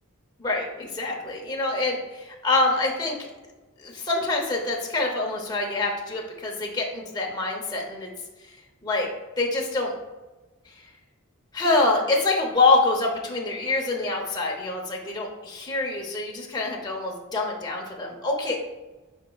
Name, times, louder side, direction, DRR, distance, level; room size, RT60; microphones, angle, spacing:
voice 1, 0.4-3.2 3.8-8.1 8.5-8.6 8.8-9.1 9.4-9.9 11.5-18.6, left 3 dB, 20° left, -1 dB, 0.8 m, -25 dB
9.8 x 4.3 x 2.3 m, 1.2 s
head